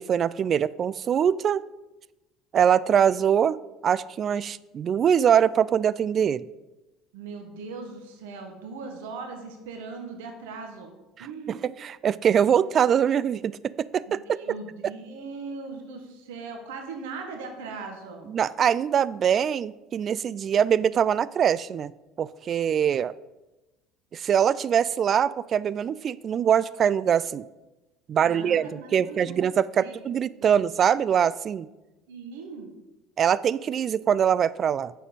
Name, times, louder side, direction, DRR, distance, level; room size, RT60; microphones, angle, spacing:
voice 1, 0.0-1.6 2.5-3.6 3.8-6.5 11.2-14.2 18.3-21.9 22.2-23.1 24.1-27.4 28.1-31.7 33.2-35.0, right 8 dB, 40° right, 19 dB, 0.3 m, -23 dB
voice 2, 7.1-10.9 11.2-11.7 14.1-18.3 28.2-29.4 29.7-30.6 32.1-32.8, right 4 dB, 65° right, 4 dB, 1.4 m, -39 dB
8.9 x 6.6 x 5.2 m, 1.0 s
figure-of-eight pair, 65°, 0 cm